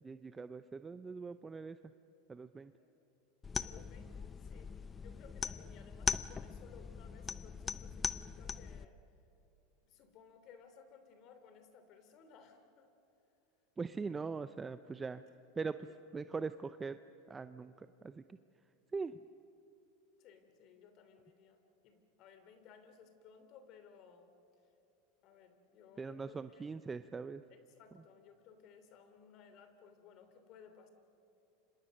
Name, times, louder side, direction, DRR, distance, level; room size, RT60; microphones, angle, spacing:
voice 1, 0.0-1.8 2.3-2.7 13.8-15.2 15.6-15.9 16.1-17.0 17.3-18.4 18.9-19.2 26.0-27.4, right 4 dB, 15° right, 11 dB, 0.6 m, -41 dB
sound 1, 3.4-8.8, left 6 dB, 20° left, 0.6 m, -40 dB
voice 2, 3.6-9.0 9.8-12.9 15.9-16.0 20.2-24.3 25.2-26.6 27.5-30.9, left 6 dB, 50° left, 8 dB, 3.1 m, -60 dB
29.5 x 26.0 x 6.5 m, 2.8 s
supercardioid pair, 115°, 0 cm